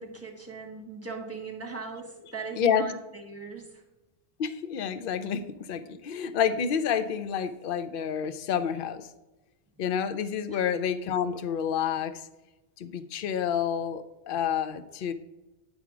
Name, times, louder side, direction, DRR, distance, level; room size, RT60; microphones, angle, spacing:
voice 1, 0.0-3.8 10.5-10.6, right 4 dB, 10° right, 0 dB, 1.5 m, -39 dB
voice 2, 2.6-2.9 4.4-9.1 9.8-12.3 12.8-15.1, left 8 dB, 60° left, 11 dB, 0.7 m, -29 dB
9.6 x 3.5 x 6.0 m, 1.1 s
omnidirectional pair, 1.2 m